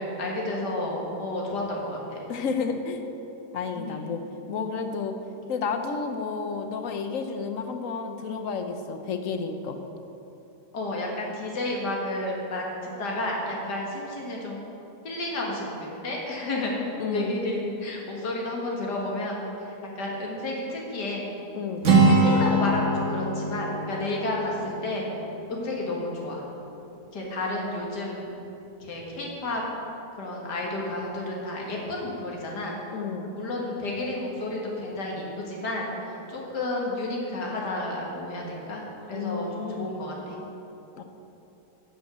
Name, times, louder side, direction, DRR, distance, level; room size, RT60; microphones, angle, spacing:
voice 1, 0.0-2.2 3.8-4.0 10.7-12.7 13.0-14.6 15.0-16.7 17.1-19.4 20.0-21.3 22.1-25.1 25.5-26.4 27.1-28.3 28.8-29.6 30.2-32.8 33.2-35.9 36.3-38.8 39.1-40.4, left 1 dB, 75° left, -2 dB, 2.4 m, -31 dB
voice 2, 2.3-3.0 3.5-4.2 4.5-5.1 5.5-9.8 17.0-17.3 21.5-21.8 32.9-33.3 39.1-40.0 41.0-41.1, left 5 dB, 60° left, 6 dB, 1.1 m, -31 dB
Acoustic guitar, 21.8-25.8, right 2 dB, 45° right, 1.6 m, -23 dB
11.0 x 5.4 x 8.0 m, 2.9 s
omnidirectional pair, 1.8 m